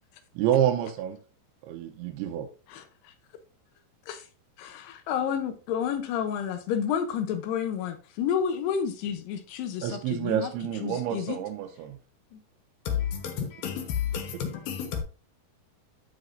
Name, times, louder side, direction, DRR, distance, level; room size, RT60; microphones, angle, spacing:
voice 1, 0.4-1.2 1.6-2.5 9.8-12.0, right 10 dB, 85° right, 2.6 m, -28 dB
voice 2, 4.6-10.5 10.8-11.4 12.3-12.4, left 8 dB, 85° left, 3.0 m, -30 dB
voice 3, 12.8-15.0, left 8 dB, 70° left, 2.9 m, -31 dB
11.0 x 5.8 x 2.6 m
omnidirectional pair, 4.6 m